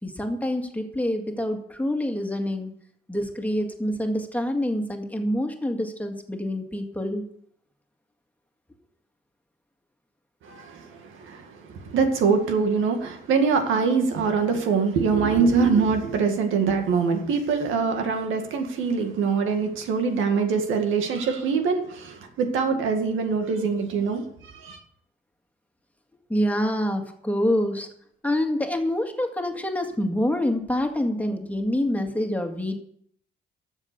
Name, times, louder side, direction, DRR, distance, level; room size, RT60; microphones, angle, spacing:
voice 1, 0.0-2.7 3.1-7.3 26.3-27.9 28.2-32.8, left 1 dB, 10° left, 2.0 m, -26 dB
voice 2, 10.4-24.8, right 5 dB, 85° right, 2.1 m, -24 dB
12.5 x 7.4 x 6.9 m
cardioid pair, 90°, 20 cm